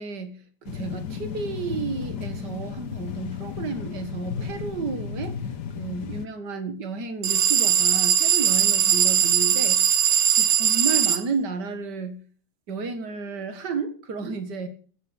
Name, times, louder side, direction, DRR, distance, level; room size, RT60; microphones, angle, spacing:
voice 1, 0.0-5.4 5.8-12.2 12.7-14.7, right 4 dB, 70° right, 2.4 m, -32 dB
sound 1, 0.6-6.3, left 7 dB, 70° left, 1.6 m, -34 dB
sound 2, 7.2-11.2, right 8 dB, 85° right, 1.8 m, -20 dB
15.0 x 8.2 x 8.2 m
omnidirectional pair, 1.9 m